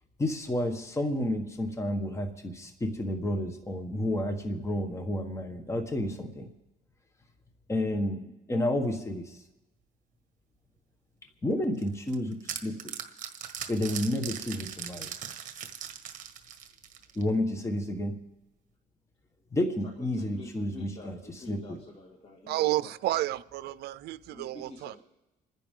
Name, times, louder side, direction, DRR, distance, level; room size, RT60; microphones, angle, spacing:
voice 1, 0.2-6.5 7.7-8.2 8.5-9.4 11.4-12.9 13.7-15.1 17.1-18.2 19.5-21.2 21.5-21.8, left 1 dB, 15° left, 6 dB, 1.4 m, -30 dB
sound 1, 11.8-17.3, right 8 dB, 50° right, 1.5 m, -39 dB
voice 2, 19.8-23.2 24.3-25.0, left 2 dB, 35° left, -1 dB, 2.3 m, -48 dB
voice 3, 22.5-24.9, right 16 dB, 70° right, 16 dB, 0.5 m, -31 dB
28.0 x 10.0 x 3.8 m, 1.1 s
cardioid pair, 110°, 17 cm